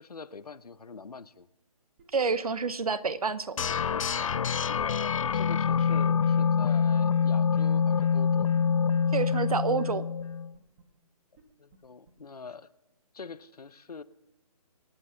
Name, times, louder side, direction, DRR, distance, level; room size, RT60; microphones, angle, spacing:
voice 1, 0.0-1.5 4.7-8.6 11.6-12.7 13.1-14.0, left 5 dB, 80° left, 14 dB, 0.9 m, -44 dB
sound 1, 2.0-2.1 2.3-2.4 2.7-2.8 3.0-3.3 3.9-4.0 4.2-4.3 4.6-5.2 5.7-5.8 6.1-6.2 6.4-6.5 6.8-7.1 7.6-7.7 8.0-8.1 8.3-9.0 9.5-9.6 9.8-9.9 10.2-10.3 10.5-10.8 11.4-11.5 11.7-11.8 12.1-12.2, right 7 dB, 20° right, 1.6 m, -57 dB
voice 2, 2.1-3.6 9.1-10.1, right 5 dB, 70° right, 16 dB, 0.9 m, -28 dB
sound 2, 3.6-10.5, left 6 dB, 60° left, 0.4 m, -26 dB
25.5 x 9.3 x 3.9 m, 0.98 s
figure-of-eight pair, 155°, 19 cm